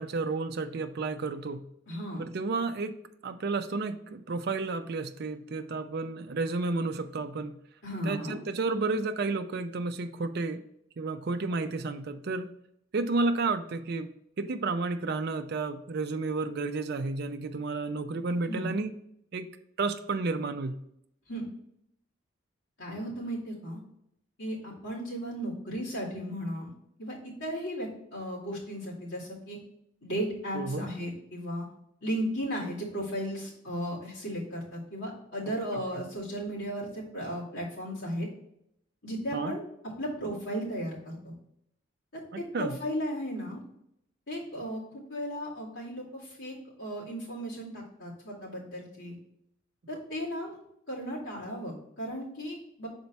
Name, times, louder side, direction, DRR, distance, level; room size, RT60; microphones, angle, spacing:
voice 1, 0.0-1.7 2.2-3.0 3.2-7.6 8.0-10.6 11.0-12.5 12.9-14.1 14.4-18.9 19.3-19.5 19.8-20.8 30.5-30.9 35.5-35.8 39.3-39.6 42.3-42.8, right 3 dB, 55° right, 8 dB, 0.4 m, -31 dB
voice 2, 1.9-2.2 7.8-8.4 18.5-18.7 21.3-21.5 22.8-23.8 24.4-26.7 27.0-29.6 30.0-31.7 32.0-38.3 39.0-39.6 40.0-41.3 42.1-43.6 44.3-49.2 49.9-50.6 50.9-52.9, equal, 75° left, -6 dB, 2.4 m, -35 dB
5.9 x 4.3 x 4.1 m, 0.75 s
head